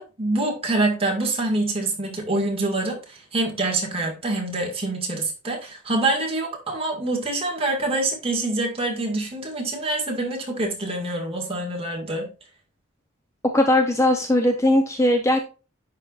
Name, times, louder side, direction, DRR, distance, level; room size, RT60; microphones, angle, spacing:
voice 1, 0.0-12.3, right 2 dB, 25° right, 1 dB, 1.8 m, -25 dB
voice 2, 13.5-15.4, left 1 dB, 15° left, 4 dB, 0.6 m, -19 dB
10.5 x 4.4 x 2.4 m, 0.33 s
head